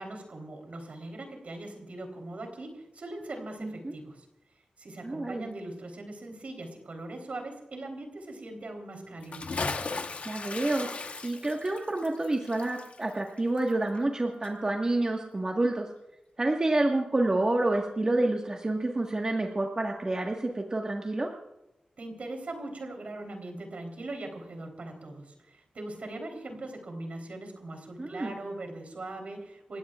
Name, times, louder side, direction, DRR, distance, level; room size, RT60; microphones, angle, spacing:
voice 1, 0.0-4.3 4.8-9.5 22.0-29.8, right 2 dB, 60° right, 3 dB, 3.7 m, -40 dB
voice 2, 3.6-3.9 5.0-5.4 10.2-15.9 16.4-21.3 28.0-28.3, right 2 dB, 30° right, 0 dB, 1.6 m, -28 dB
Bathtub (filling or washing) / Splash splatter, 9.2-14.2 14.4-14.5, left 4 dB, 60° left, 1.2 m, -37 dB
29.0 x 16.0 x 2.5 m, 0.89 s
wide cardioid pair, 110°, 3 cm